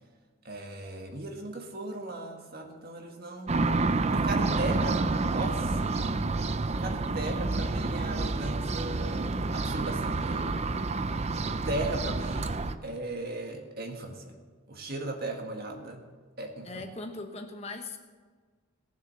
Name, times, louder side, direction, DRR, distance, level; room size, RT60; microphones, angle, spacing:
voice 1, 0.5-3.6 4.1-6.0 6.7-10.6 11.7-14.3 14.7-16.0 16.4-16.8, right 2 dB, 45° right, 3 dB, 1.8 m, -37 dB
sound 1, 3.5-12.8, right 3 dB, 30° right, 0.5 m, -29 dB
voice 2, 16.6-18.0, left 3 dB, 30° left, 5 dB, 1.1 m, -39 dB
18.5 x 7.3 x 6.8 m, 1.5 s
head